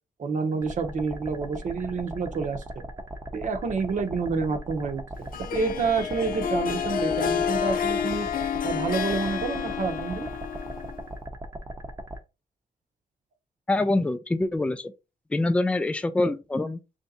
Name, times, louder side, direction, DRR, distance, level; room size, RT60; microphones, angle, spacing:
voice 1, 0.2-2.6 3.3-8.3 8.6-10.3, right 4 dB, 55° right, 0.8 m, -28 dB
sound 1, 0.6-12.2, right 1 dB, 20° right, 0.7 m, -39 dB
Harp, 5.3-11.1, left 8 dB, 65° left, 0.5 m, -29 dB
voice 2, 13.7-14.9 15.3-17.0, left 2 dB, 10° left, 0.4 m, -25 dB
3.3 x 2.7 x 4.0 m
cardioid pair, 100°, 16 cm